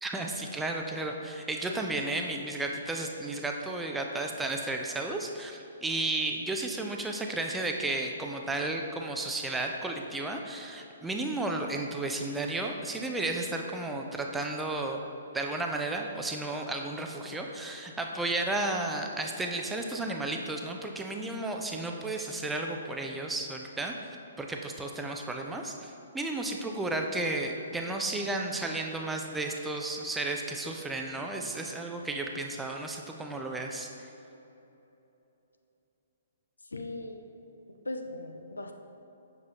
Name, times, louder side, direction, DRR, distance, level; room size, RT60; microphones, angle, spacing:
voice 1, 0.0-15.0 15.3-34.1, right 2 dB, 5° right, 2 dB, 0.4 m, -33 dB
voice 2, 36.7-37.2 37.7-38.7, left 2 dB, 75° left, 5 dB, 0.5 m, -39 dB
7.3 x 5.9 x 3.0 m, 3.0 s
figure-of-eight pair, 125°, 0 cm